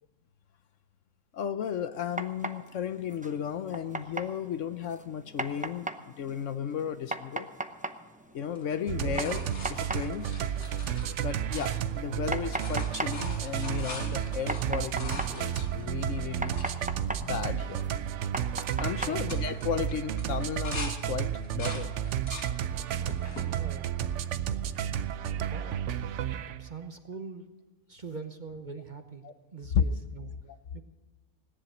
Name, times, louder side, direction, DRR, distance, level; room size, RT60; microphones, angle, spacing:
voice 1, 1.3-7.5 8.3-9.4 9.7-10.5 11.2-16.5 17.2-17.9 18.8-21.9 29.2-29.3 29.7-29.8, left 8 dB, 65° left, 11 dB, 1.0 m, -34 dB
sound 1, 1.9-19.9, right 1 dB, 10° right, 0.4 m, -40 dB
sound 2, 8.5-12.1 12.4-16.8 17.3-17.4 17.6-18.1 18.4-18.7 19.1-20.9 21.3-22.5 23.0-23.5 24.1-24.9 26.5-26.6, left 2 dB, 80° left, 2.6 m, -43 dB
sound 3, 8.9-26.7, right 9 dB, 65° right, 0.9 m, -32 dB
voice 2, 19.0-19.3 23.3-23.9 25.4-25.9 26.3-27.5 27.9-29.2 29.5-30.3 30.7-30.8, right 4 dB, 35° right, 7 dB, 1.0 m, -43 dB
17.5 x 10.5 x 6.2 m, 1.3 s
omnidirectional pair, 1.5 m